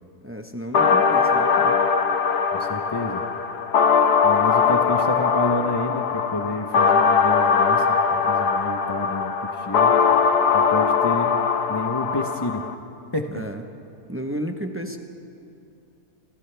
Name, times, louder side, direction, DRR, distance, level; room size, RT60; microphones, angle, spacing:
voice 1, 0.2-1.8 13.3-13.6 14.1-15.0, equal, 10° right, 4 dB, 0.8 m, -32 dB
sound 1, 0.7-12.7, left 6 dB, 85° left, 1.4 m, -20 dB
voice 2, 2.5-3.2 4.2-7.9 8.1-9.9 10.5-11.4 11.7-12.6 13.1-13.5, left 2 dB, 25° left, 3 dB, 0.5 m, -29 dB
29.5 x 26.5 x 3.4 m, 2.7 s
omnidirectional pair, 1.7 m